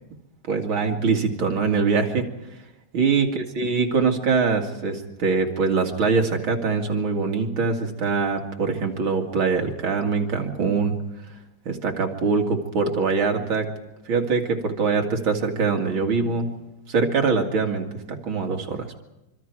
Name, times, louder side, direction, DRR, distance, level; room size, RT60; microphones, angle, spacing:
voice 1, 0.5-2.2 2.9-10.9 11.7-13.7 14.1-16.5 16.9-18.8, right 4 dB, 85° right, 3 dB, 3.1 m, -23 dB
25.5 x 25.0 x 4.7 m, 0.95 s
omnidirectional pair, 2.2 m